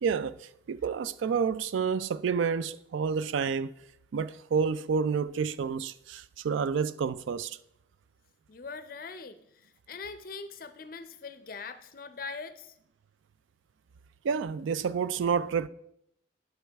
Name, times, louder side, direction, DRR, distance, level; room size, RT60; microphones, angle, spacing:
voice 1, 0.0-3.7 4.1-7.6 14.2-15.7, right 6 dB, 90° right, 0.3 m, -29 dB
voice 2, 8.5-12.8, left 4 dB, 50° left, 0.5 m, -42 dB
11.0 x 5.5 x 3.4 m
head